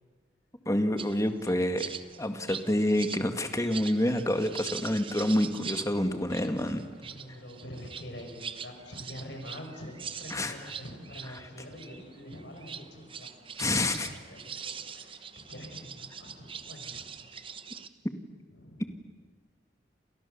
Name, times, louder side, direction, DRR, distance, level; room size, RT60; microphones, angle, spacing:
voice 1, 0.7-6.8 10.3-10.5 13.6-14.1, left 1 dB, 20° left, 7 dB, 1.9 m, -28 dB
sound 1, 1.0-17.9, right 6 dB, 30° right, 1.0 m, -43 dB
voice 2, 7.0-13.7 14.0-17.1 18.5-18.8, equal, 75° left, 3 dB, 6.7 m, -45 dB
30.0 x 27.5 x 7.1 m, 1.4 s
head